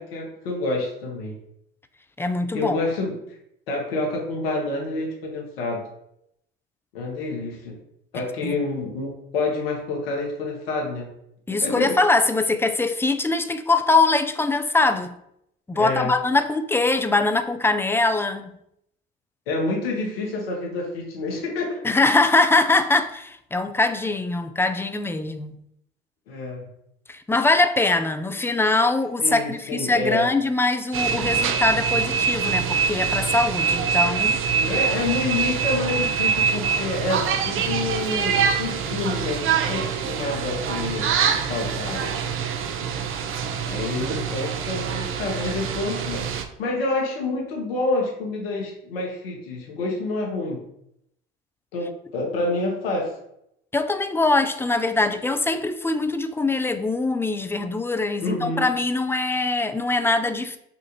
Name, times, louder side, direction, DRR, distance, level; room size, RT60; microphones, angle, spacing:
voice 1, 0.0-1.3 2.5-3.2 3.7-5.8 6.9-7.8 8.1-11.1 11.6-12.0 15.7-16.1 19.5-21.8 26.3-26.7 29.2-30.3 34.6-41.1 41.5-42.1 43.6-46.2 46.6-50.6 51.7-53.1 58.2-58.7, left 2 dB, 85° left, 1.3 m, -28 dB
voice 2, 2.2-2.8 8.4-8.5 11.5-15.1 15.7-18.5 21.8-25.6 27.1-34.4 53.7-60.6, left 3 dB, 10° left, 0.3 m, -22 dB
sound 1, 30.9-46.4, right 6 dB, 45° right, 0.6 m, -24 dB
5.6 x 2.5 x 2.9 m
hypercardioid pair, 75°, 29 cm